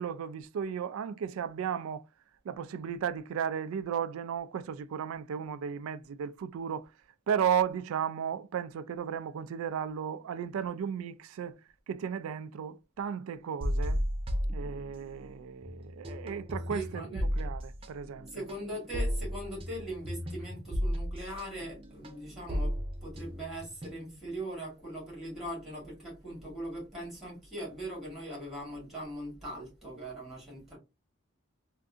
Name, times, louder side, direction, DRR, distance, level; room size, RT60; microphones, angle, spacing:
voice 1, 0.0-2.0 2.4-6.9 7.3-11.6 11.9-14.0 14.5-18.4, right 8 dB, 80° right, 0.3 m, -34 dB
sound 1, 13.6-15.3 15.6-24.3, equal, 25° right, 0.6 m, -34 dB
voice 2, 16.7-17.2 18.3-30.8, right 1 dB, ahead, 2.0 m, -40 dB
3.5 x 2.6 x 2.4 m
head